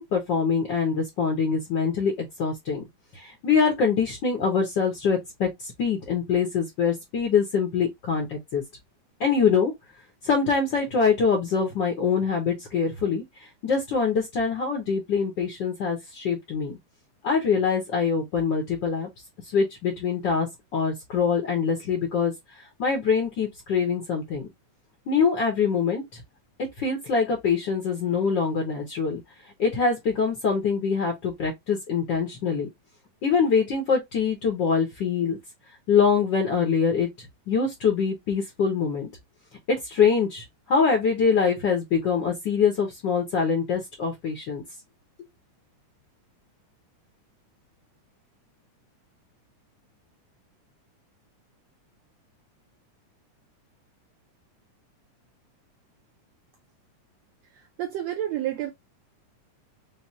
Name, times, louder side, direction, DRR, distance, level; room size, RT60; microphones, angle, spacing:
voice 1, 0.0-2.8 3.1-8.6 9.2-9.7 10.2-13.2 13.6-16.8 17.2-19.1 19.5-22.3 22.8-24.5 25.1-26.2 26.8-29.2 29.6-32.7 33.2-35.4 35.9-39.1 39.7-44.6, left 5 dB, 75° left, 1.0 m, -24 dB
voice 2, 57.5-58.7, right 12 dB, 80° right, 1.6 m, -30 dB
6.0 x 2.0 x 2.6 m
omnidirectional pair, 3.5 m